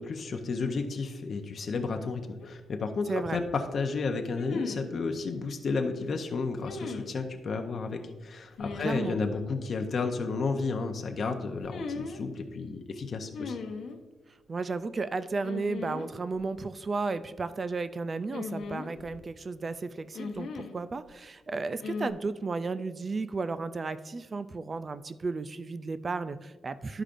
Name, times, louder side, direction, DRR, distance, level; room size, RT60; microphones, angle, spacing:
voice 1, 0.0-13.6, left 4 dB, 50° left, 5 dB, 0.7 m, -32 dB
sound 1, 2.4-2.5 4.3-4.9 6.6-7.1 8.6-9.1 11.6-12.2 13.3-14.0 15.4-16.1 16.4-16.5 18.3-19.2 20.1-20.8 21.8-22.1, left 4 dB, 70° left, 1.0 m, -38 dB
voice 2, 8.8-9.2 14.5-27.0, right 3 dB, 30° right, 13 dB, 0.3 m, -33 dB
13.0 x 4.9 x 2.5 m, 1.3 s
cardioid pair, 120°, 0 cm